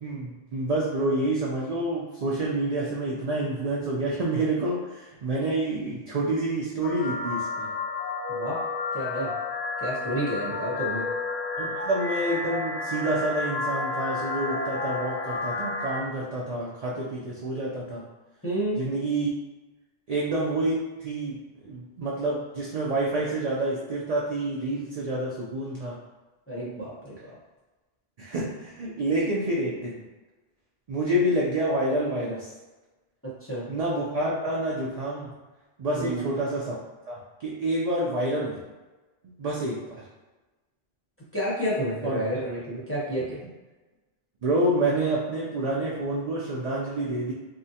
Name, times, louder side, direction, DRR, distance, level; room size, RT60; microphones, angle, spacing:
voice 1, 0.0-7.7 11.6-18.0 18.8-19.3 20.1-21.4 21.6-26.0 28.2-29.9 30.9-32.5 33.7-35.3 35.8-36.8 37.1-38.6 39.4-40.0 42.0-42.2 44.4-47.3, right 1 dB, 55° right, -5 dB, 0.4 m, -28 dB
sound 1, 6.8-16.0, left 3 dB, 75° left, 0.8 m, -31 dB
voice 2, 8.9-9.3 9.8-11.1 18.4-18.8 26.5-27.3 33.2-33.7 35.9-36.2 41.3-43.4, equal, 15° left, -8 dB, 0.7 m, -30 dB
3.5 x 2.1 x 2.7 m, 1.2 s
omnidirectional pair, 1.1 m